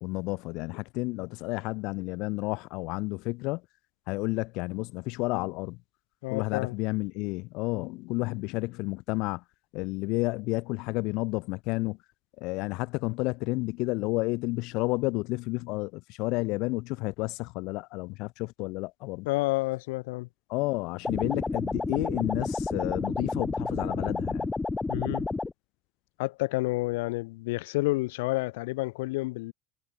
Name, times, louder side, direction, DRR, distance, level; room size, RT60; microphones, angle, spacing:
voice 1, 0.0-3.6 4.1-5.8 6.3-9.4 9.7-12.0 12.4-19.3 20.5-24.5, left 24 dB, 60° left, 1.4 m, -31 dB
voice 2, 6.2-6.8 19.3-20.3 24.9-25.3 26.2-29.5, left 22 dB, 85° left, 1.9 m, -29 dB
sound 1, 21.0-25.5, left 3 dB, 10° left, 5.4 m, -31 dB
supercardioid pair, 140°, 0 cm